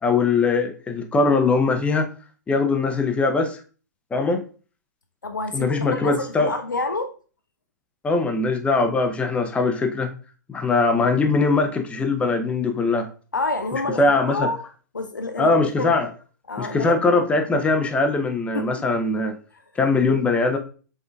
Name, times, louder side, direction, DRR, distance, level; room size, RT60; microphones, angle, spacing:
voice 1, 0.0-2.1 2.5-3.6 4.1-4.4 5.5-6.5 8.0-10.1 10.5-13.1 14.0-14.5 15.4-16.1 16.6-19.4 19.8-20.6, left 3 dB, 10° left, 0.6 m, -21 dB
voice 2, 5.2-7.1 13.3-14.6 14.9-16.0 16.5-17.2 18.5-18.8 19.5-19.6, left 2 dB, 85° left, 0.4 m, -28 dB
5.0 x 3.7 x 2.3 m
figure-of-eight pair, 105°, 10 cm